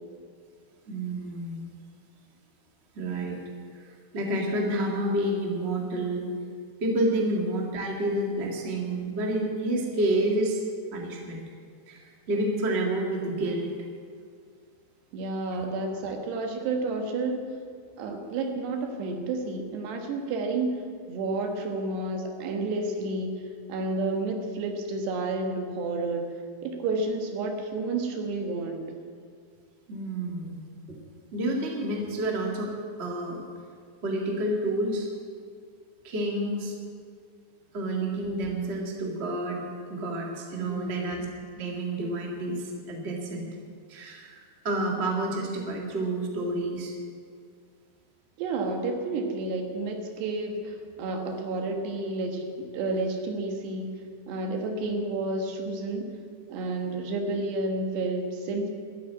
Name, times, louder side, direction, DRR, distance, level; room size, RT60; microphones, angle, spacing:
voice 1, 0.9-1.6 2.9-3.4 3.7-3.8 4.1-6.3 6.8-10.6 10.9-11.4 11.9-13.7 29.9-30.6 30.9-31.0 31.3-33.4 34.0-35.1 36.0-36.7 37.7-41.2 41.6-43.5 43.9-44.4 44.6-46.9, right 1 dB, 35° right, -1 dB, 1.0 m, -29 dB
voice 2, 15.1-17.5 18.0-20.8 21.1-23.4 23.7-26.3 26.6-28.9 40.6-41.1 48.4-53.9 54.3-56.1 56.5-58.7, right 2 dB, 75° right, 3 dB, 3.5 m, -30 dB
13.0 x 9.2 x 8.5 m, 2.1 s
omnidirectional pair, 4.9 m